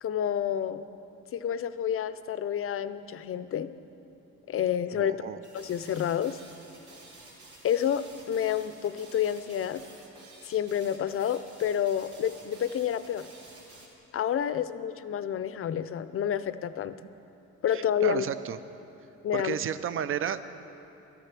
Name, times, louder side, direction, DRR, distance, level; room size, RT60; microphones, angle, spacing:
voice 1, 0.0-0.9 1.3-3.7 4.5-5.3 5.5-6.4 7.6-9.8 10.4-13.3 14.1-17.0 17.6-18.2 19.2-19.6, left 9 dB, 45° left, 14 dB, 0.5 m, -29 dB
voice 2, 4.9-5.4 17.7-18.6 19.3-20.6, right 9 dB, 45° right, 13 dB, 0.5 m, -32 dB
sound 1, 5.4-13.9, right 2 dB, 75° right, 2.4 m, -51 dB
12.5 x 10.0 x 6.0 m, 2.9 s
cardioid pair, 90°, 30 cm